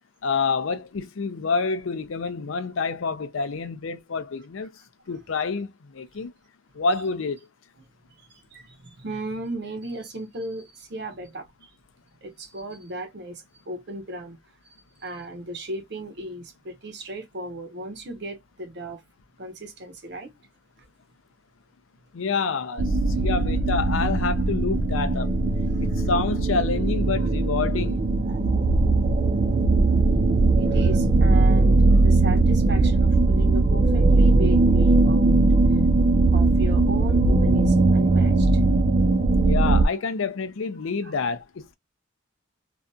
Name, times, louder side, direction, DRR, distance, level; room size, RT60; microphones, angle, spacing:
voice 1, 0.2-4.8 5.1-6.3 6.7-7.4 22.1-25.4 25.8-28.0 39.4-41.7, left 4 dB, 75° left, 0.5 m, -28 dB
voice 2, 8.2-11.7 12.2-14.4 15.0-19.0 19.4-20.3 20.8-20.9 27.2-27.3 28.3-28.6 29.9-30.0 30.3-35.4 35.7-35.8 36.3-38.6 41.0-41.1, right 1 dB, 55° right, 0.8 m, -36 dB
sound 1, 22.8-39.9, right 3 dB, 35° right, 0.3 m, -19 dB
2.7 x 2.4 x 2.2 m
head